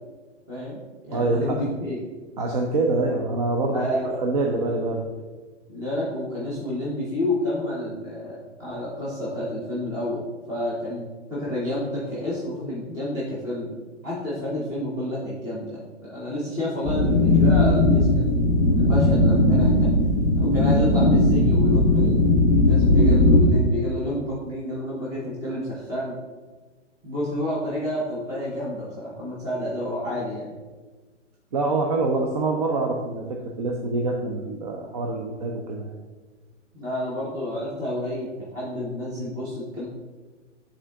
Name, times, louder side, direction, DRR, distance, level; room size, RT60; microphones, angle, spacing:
voice 1, 0.5-2.1 3.7-4.2 5.7-13.7 14.0-18.3 18.8-19.9 20.3-22.2 22.5-26.1 27.0-30.5 36.7-39.8, left 1 dB, 10° right, -7 dB, 0.8 m, -29 dB
voice 2, 1.1-1.6 2.4-3.9 4.2-5.0 31.5-35.9, right 2 dB, 35° right, 1 dB, 0.5 m, -25 dB
sound 1, 16.9-23.5, left 1 dB, 25° left, 0.5 m, -18 dB
11.0 x 3.7 x 2.3 m, 1.3 s
hypercardioid pair, 150°, 36 cm